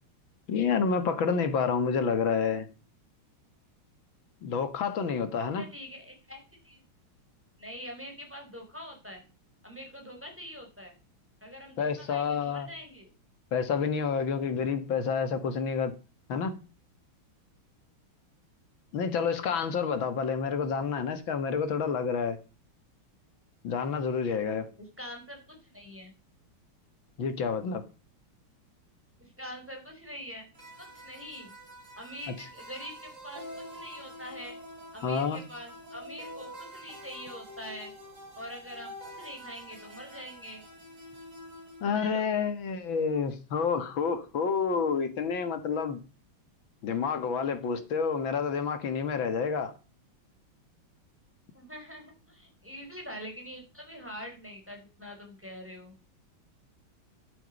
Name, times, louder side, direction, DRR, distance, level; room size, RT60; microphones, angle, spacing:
voice 1, 0.5-2.7 4.4-5.6 11.8-12.7 13.5-15.9 16.3-16.6 18.9-22.4 23.6-24.7 27.2-27.8 35.0-35.4 41.8-46.0 46.8-49.7, left 6 dB, 70° left, 2.2 m, -29 dB
voice 2, 5.6-6.8 7.6-9.2 9.6-10.9 11.4-13.1 24.8-26.1 29.2-30.5 30.8-31.5 32.0-33.4 33.7-34.6 34.9-37.9 38.4-38.9 39.2-40.6 41.9-42.3 51.5-56.0, equal, 5° right, 4.0 m, -44 dB
sound 1, 30.5-41.8, equal, 35° right, 4.1 m, -47 dB
12.0 x 11.0 x 5.3 m
omnidirectional pair, 2.3 m